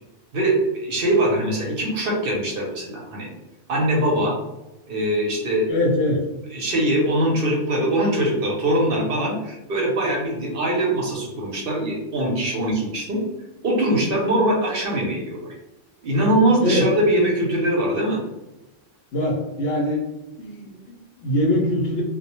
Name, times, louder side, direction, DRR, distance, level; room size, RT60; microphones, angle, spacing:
voice 1, 0.8-3.3 3.7-4.3 4.9-5.7 6.5-13.2 13.6-15.5 16.0-18.2, right 1 dB, 55° right, -2 dB, 0.7 m, -22 dB
voice 2, 5.7-6.2 16.6-16.9 19.1-20.0 20.4-22.0, left 1 dB, 65° left, -2 dB, 0.7 m, -23 dB
2.1 x 2.1 x 2.9 m, 0.98 s
omnidirectional pair, 1.3 m